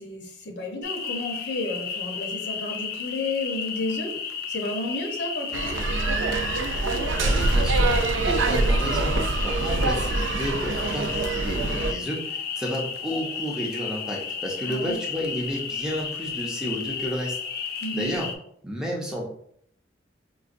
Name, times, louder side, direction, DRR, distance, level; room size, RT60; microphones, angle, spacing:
voice 1, 0.0-4.1 4.5-5.8 14.7-15.0 17.8-18.1, left 2 dB, 70° left, 2 dB, 0.7 m, -32 dB
sound 1, 0.8-18.4, left 6 dB, 55° left, 0.3 m, -33 dB
sound 2, 5.5-11.9, right 2 dB, 90° right, 0.4 m, -24 dB
voice 2, 7.1-9.1 9.4-17.4 17.9-18.3 18.6-19.2, equal, 5° right, -3 dB, 0.5 m, -31 dB
4.6 x 2.2 x 2.5 m, 0.66 s
head